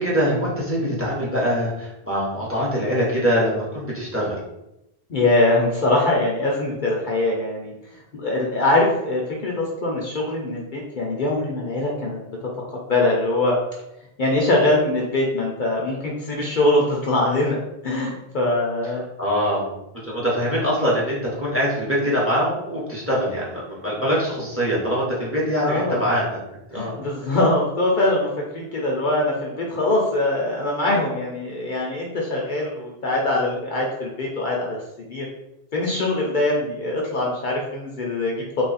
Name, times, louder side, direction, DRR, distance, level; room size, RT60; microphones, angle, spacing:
voice 1, 0.0-4.4 19.2-19.7 20.0-26.4 26.7-27.0 27.2-27.4, equal, 15° right, -6 dB, 1.0 m, -23 dB
voice 2, 5.1-7.7 8.1-12.2 12.9-13.6 14.2-19.0 25.6-26.0 26.7-34.8 35.1-35.2 35.7-38.6, left 2 dB, 55° left, -2 dB, 0.7 m, -22 dB
3.1 x 2.4 x 4.0 m, 0.87 s
omnidirectional pair, 1.0 m